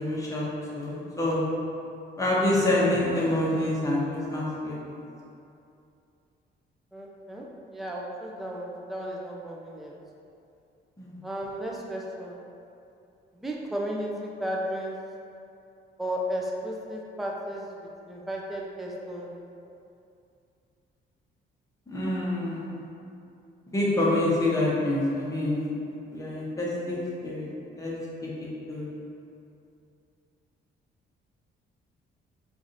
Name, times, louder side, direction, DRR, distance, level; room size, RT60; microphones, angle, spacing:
voice 1, 0.0-1.4 2.2-5.0 11.0-11.1 21.9-22.7 23.7-25.7 26.1-27.5 27.8-27.9 28.2-28.9, left 1 dB, 15° left, -6 dB, 1.0 m, -27 dB
voice 2, 6.9-9.9 11.2-12.4 13.3-15.0 16.0-19.4, equal, ahead, -2 dB, 0.4 m, -34 dB
4.6 x 2.6 x 2.7 m, 2.6 s
cardioid pair, 90°, 20 cm